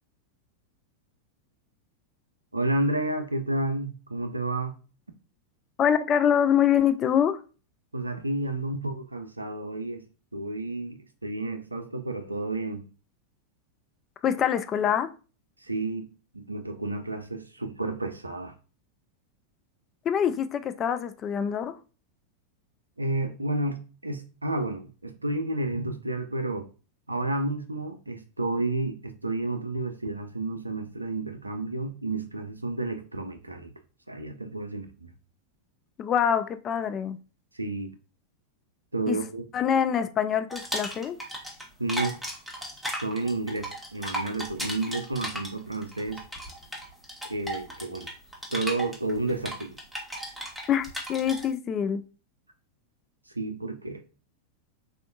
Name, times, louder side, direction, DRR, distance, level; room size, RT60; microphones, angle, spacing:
voice 1, 2.5-4.8 7.9-10.0 10.3-12.9 15.6-16.1 16.3-18.5 23.0-26.7 27.1-33.7 34.1-35.1 37.5-37.9 38.9-39.5 41.8-42.2 43.0-46.2 47.2-48.1 48.5-49.8 53.3-54.0, right 2 dB, 85° right, 0.4 m, -31 dB
voice 2, 5.8-7.4 14.2-15.1 20.0-21.7 36.0-37.2 39.1-39.2 39.5-41.2 50.7-52.0, left 8 dB, 30° left, 0.3 m, -25 dB
sound 1, 40.5-41.6 41.9-51.5, equal, ahead, 0.9 m, -36 dB
3.4 x 2.4 x 2.6 m
figure-of-eight pair, 90°, 0 cm